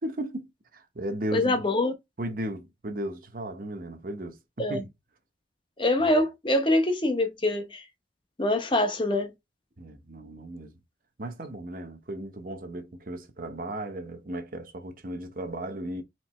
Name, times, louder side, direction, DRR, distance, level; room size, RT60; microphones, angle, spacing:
voice 1, 0.0-1.6 2.2-4.9 6.0-6.1 9.8-10.7 11.2-16.0, right 1 dB, 50° right, 0.9 m, -35 dB
voice 2, 1.3-1.9 4.6-4.8 5.8-7.8 8.4-9.3, left 1 dB, 25° left, 0.9 m, -24 dB
4.5 x 3.2 x 3.2 m
head